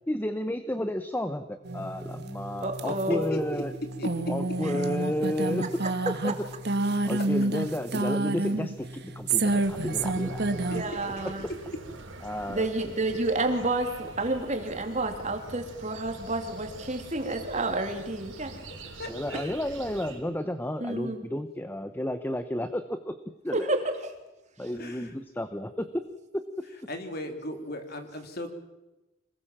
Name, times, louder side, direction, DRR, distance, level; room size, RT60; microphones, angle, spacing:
voice 1, 0.1-3.7 4.3-5.7 6.0-6.5 7.0-10.7 12.2-12.7 19.1-23.2 23.4-23.7 24.6-26.0 26.3-26.4, left 1 dB, 10° left, 1.0 m, -32 dB
sound 1, 1.6-10.8, right 2 dB, 55° right, 1.8 m, -29 dB
voice 2, 2.6-3.3 10.6-11.4 12.5-18.6 20.8-21.2 23.5-23.9, right 2 dB, 35° right, 3.1 m, -30 dB
voice 3, 3.3-3.6 4.0-4.3 10.7-11.1 19.0-19.5 24.8-25.1 26.9-28.5, equal, 50° left, 3.6 m, -36 dB
sound 2, 9.5-20.2, right 2 dB, 85° right, 4.7 m, -45 dB
26.5 x 20.5 x 7.4 m
head